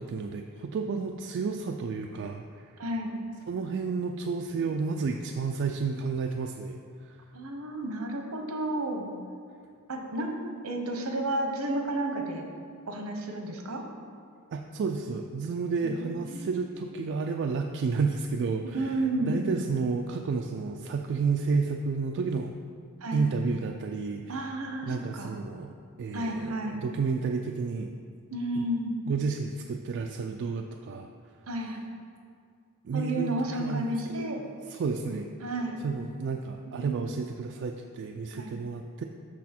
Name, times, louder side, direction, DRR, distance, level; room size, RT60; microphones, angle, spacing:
voice 1, 0.0-2.8 3.5-7.2 14.5-22.6 23.1-24.5 24.8-27.9 28.6-28.7 29.1-31.1 32.8-34.3 34.7-35.5 35.8-39.0, right 4 dB, 55° right, 3 dB, 0.3 m, -31 dB
voice 2, 2.8-3.1 7.3-9.1 9.9-10.3 10.6-12.5 12.9-13.8 15.8-16.7 18.7-19.5 23.0-23.3 24.3-25.3 26.1-26.8 28.3-29.0 31.5-31.8 32.9-34.4 35.4-35.8 36.8-37.1 38.3-38.6, right 1 dB, 75° right, 3 dB, 0.9 m, -32 dB
6.3 x 6.2 x 4.3 m, 2.3 s
head